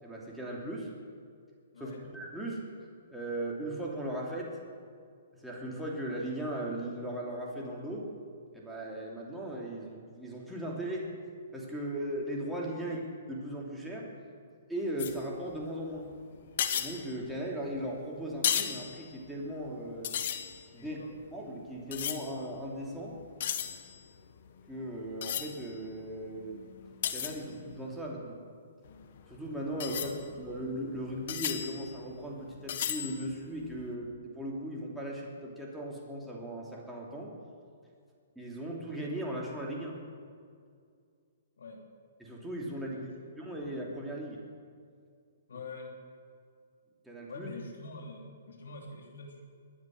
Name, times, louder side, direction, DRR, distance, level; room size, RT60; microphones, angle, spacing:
voice 1, 0.0-0.9 1.8-2.6 3.1-4.6 5.4-8.1 8.5-11.1 11.5-13.0 13.3-14.1 14.7-16.1 16.7-20.2 20.7-21.0 21.3-23.2 24.7-26.7 27.1-28.4 29.3-30.1 30.4-37.3 38.3-40.0 42.2-43.1 43.4-44.4 47.0-47.5, right 1 dB, ahead, -4 dB, 2.9 m, -38 dB
voice 2, 1.7-2.0 12.7-12.9 20.8-21.1 29.9-30.2 41.6-41.8 42.9-43.1 43.4-43.7 45.5-45.9 47.3-49.4, left 3 dB, 80° left, 1 dB, 3.0 m, -45 dB
sound 1, 15.0-15.7 16.0-16.2 16.5-17.9 18.3-19.8 20.0-22.7 23.0-28.0 28.8-33.9, left 9 dB, 55° left, 1.3 m, -36 dB
21.5 x 9.8 x 6.5 m, 2.2 s
hypercardioid pair, 140°, 0 cm